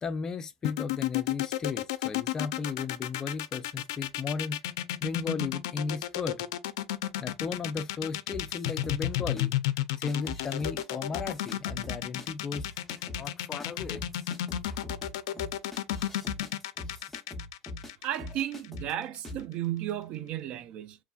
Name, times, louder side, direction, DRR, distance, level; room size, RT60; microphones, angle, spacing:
voice 1, 0.0-4.6 5.0-6.4 7.2-9.5 10.0-12.7 13.2-14.0 14.7-14.8 15.3-15.4 16.0-16.1 16.8-17.0, left 5 dB, 30° left, 0.4 m, -35 dB
sound 1, 0.6-18.8, left 13 dB, 85° left, 0.4 m, -32 dB
sound 2, 8.3-9.4 10.1-10.9 11.1-12.3 12.5-13.3 13.6-13.7 13.9-17.9 18.2-18.9 19.2-19.5, left 1 dB, 10° left, 0.9 m, -41 dB
voice 2, 18.0-21.0, right 12 dB, 50° right, 0.4 m, -34 dB
3.1 x 2.3 x 2.3 m
supercardioid pair, 115°, 2 cm